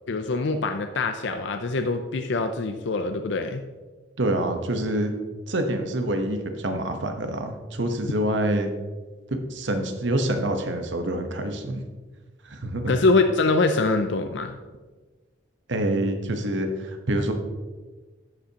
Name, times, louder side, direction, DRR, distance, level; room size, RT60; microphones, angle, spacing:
voice 1, 0.1-3.6 12.9-14.6, left 3 dB, 65° left, 7 dB, 0.5 m, -24 dB
voice 2, 4.2-5.1 5.5-8.7 9.5-11.8 12.4-12.9 15.7-17.3, right 1 dB, 70° right, 5 dB, 1.0 m, -26 dB
11.0 x 8.2 x 2.9 m, 1.3 s
head